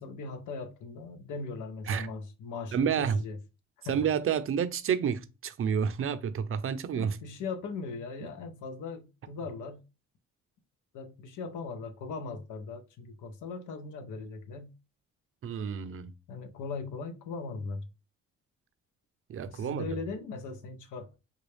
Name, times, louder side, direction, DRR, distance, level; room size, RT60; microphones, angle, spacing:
voice 1, 0.0-3.4 3.8-4.0 6.9-9.8 10.9-14.7 16.3-17.9 19.5-21.1, left 4 dB, 80° left, 0.7 m, -39 dB
voice 2, 2.7-3.2 3.9-7.2 15.4-16.1 19.3-19.9, right 7 dB, 45° right, 0.5 m, -29 dB
3.8 x 2.3 x 3.2 m
cardioid pair, 90°, 30 cm